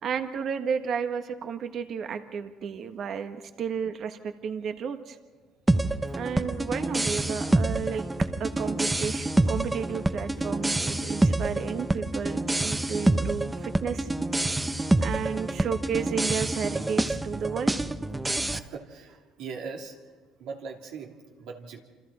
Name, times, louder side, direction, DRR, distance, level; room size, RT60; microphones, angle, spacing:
voice 1, 0.0-5.2 6.1-8.0 8.4-14.1 15.0-17.7, right 6 dB, 55° right, 8 dB, 1.4 m, -32 dB
sound 1, 5.7-18.6, right 2 dB, 10° right, 0.8 m, -27 dB
voice 2, 18.5-20.0 20.4-21.8, right 5 dB, 75° right, 1 dB, 2.9 m, -40 dB
27.5 x 26.5 x 4.3 m, 1.4 s
supercardioid pair, 90°, 0 cm